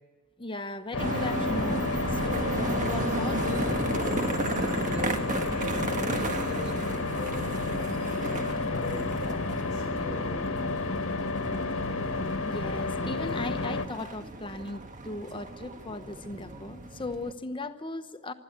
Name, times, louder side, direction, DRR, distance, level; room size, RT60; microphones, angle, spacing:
voice 1, 0.4-3.7 12.4-18.3, left 2 dB, 25° left, 1.0 m, -37 dB
sound 1, 0.9-13.9, left 3 dB, 90° left, 1.5 m, -31 dB
sound 2, 1.0-17.3, right 2 dB, 40° right, 1.5 m, -34 dB
voice 2, 4.5-8.0 8.5-10.5 16.2-16.4, left 1 dB, 60° right, 7.9 m, -41 dB
25.0 x 13.0 x 8.7 m
head